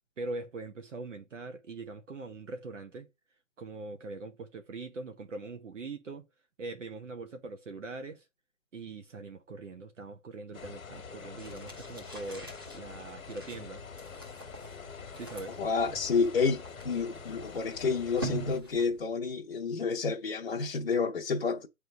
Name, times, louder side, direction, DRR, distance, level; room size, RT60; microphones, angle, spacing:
voice 1, 0.2-3.1 3.6-6.3 6.6-8.3 8.7-13.8 15.2-15.6, right 3 dB, 60° right, 1.1 m, -42 dB
sound 1, 10.5-18.6, left 6 dB, 80° left, 1.4 m, -46 dB
sound 2, 11.4-19.1, right 3 dB, 15° right, 0.9 m, -44 dB
voice 2, 15.5-21.7, left 5 dB, 45° left, 0.8 m, -30 dB
8.2 x 3.5 x 5.2 m
hypercardioid pair, 175°, 41 cm